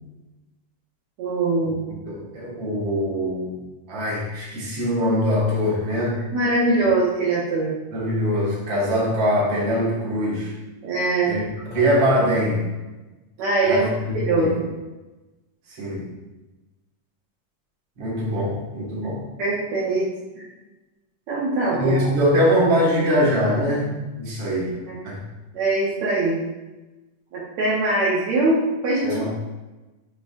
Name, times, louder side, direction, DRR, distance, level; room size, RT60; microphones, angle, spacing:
voice 1, 1.2-1.8 6.3-7.7 10.8-11.3 13.4-14.6 19.4-20.1 20.4-20.5 21.3-22.1 24.9-25.0 25.5-26.4 27.3-29.3, right 2 dB, 65° right, -7 dB, 2.1 m, -22 dB
voice 2, 2.1-3.6 3.9-6.2 7.9-10.5 11.3-11.4 11.7-12.7 13.6-14.0 14.4-14.6 15.7-16.1 18.0-19.2 21.7-24.7 25.0-25.2 29.0-29.3, equal, 40° right, -6 dB, 2.0 m, -22 dB
8.0 x 5.0 x 2.5 m, 1.1 s
omnidirectional pair, 3.8 m